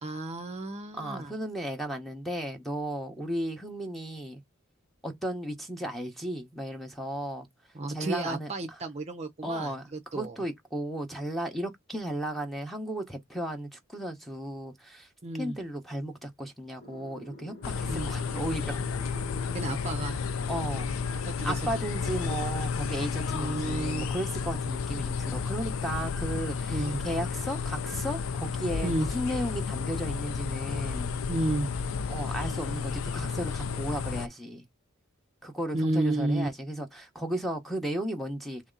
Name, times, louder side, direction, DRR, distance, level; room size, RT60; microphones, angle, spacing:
voice 1, 0.0-1.3 7.7-10.4 15.2-15.6 17.9-18.1 19.5-20.2 21.3-21.7 23.3-24.0 26.7-27.0 28.8-29.1 31.3-31.7 35.7-36.5, right 2 dB, 30° right, 0.6 m, -32 dB
voice 2, 0.9-4.4 5.0-7.5 7.9-8.5 9.4-9.8 10.1-15.1 15.4-18.8 20.5-20.9 21.4-31.1 32.1-34.6 35.4-38.6, right 1 dB, ahead, 0.9 m, -35 dB
sound 1, 16.8-23.0, left 2 dB, 50° left, 1.5 m, -48 dB
sound 2, 17.6-34.3, left 5 dB, 70° left, 0.4 m, -32 dB
3.1 x 2.8 x 3.8 m
head